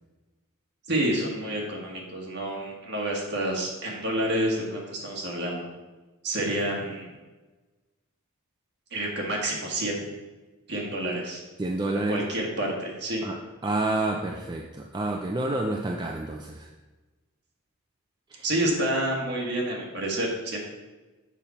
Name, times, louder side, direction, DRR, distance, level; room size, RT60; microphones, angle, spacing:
voice 1, 0.9-5.7 6.2-7.1 8.9-10.1 10.7-11.4 12.1-13.3 18.4-20.6, right 1 dB, 50° right, -2 dB, 1.7 m, -29 dB
voice 2, 11.6-12.3 13.2-16.7 18.3-18.4, right 2 dB, 20° right, 1 dB, 0.4 m, -29 dB
7.1 x 5.6 x 4.2 m, 1.2 s
head